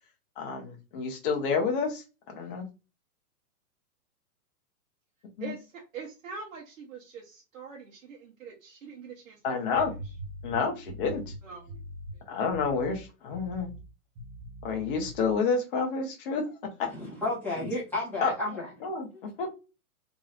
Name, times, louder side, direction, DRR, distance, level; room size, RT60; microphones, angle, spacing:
voice 1, 0.4-2.7 5.4-5.5 9.4-9.9 10.4-11.2 12.3-13.7 14.6-16.5 16.8-16.9 18.2-18.3 18.8-19.5, left 5 dB, 35° left, 2 dB, 1.1 m, -29 dB
voice 2, 5.4-9.4 9.7-9.9 11.4-11.8 12.3-12.4, right 5 dB, 60° right, -1 dB, 1.2 m, -44 dB
sound 1, 9.8-12.2 12.5-13.0 13.3-13.9 14.1-15.3, right 1 dB, 25° right, 0.9 m, -43 dB
voice 3, 16.9-18.7, left 2 dB, 5° left, -8 dB, 1.3 m, -32 dB
3.8 x 3.0 x 2.5 m, 0.29 s
hypercardioid pair, 160°, 45 cm